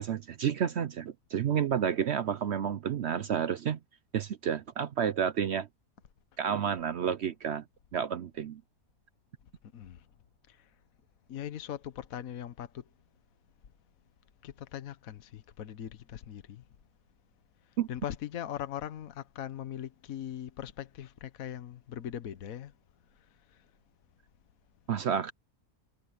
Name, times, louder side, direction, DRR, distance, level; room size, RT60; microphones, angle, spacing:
voice 1, 0.0-3.8 4.1-5.7 6.4-7.6 7.9-8.6 17.8-17.9 24.9-25.3, right 8 dB, 65° right, 0.7 m, -30 dB
voice 2, 9.7-10.0 10.5-10.6 11.3-12.8 14.4-16.6 17.9-22.7, left 10 dB, 60° left, 1.4 m, -40 dB
omnidirectional pair, 1.7 m